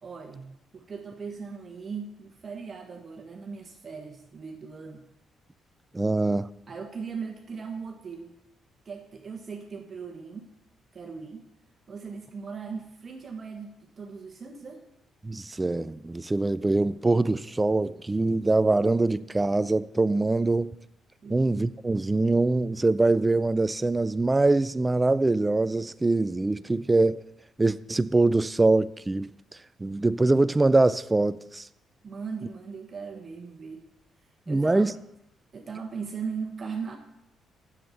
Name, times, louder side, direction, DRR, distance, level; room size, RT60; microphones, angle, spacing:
voice 1, 0.0-5.0 6.7-8.4 8.8-10.5 10.9-11.5 11.9-14.8 21.2-21.4 32.0-33.9 34.5-34.9 35.5-36.9, right 5 dB, 40° right, 1.3 m, -38 dB
voice 2, 5.9-6.5 15.2-20.7 21.3-27.2 27.6-29.3 29.8-31.7 34.5-34.9, right 2 dB, 20° right, 0.4 m, -23 dB
7.8 x 7.2 x 7.7 m
cardioid pair, 90°, 0 cm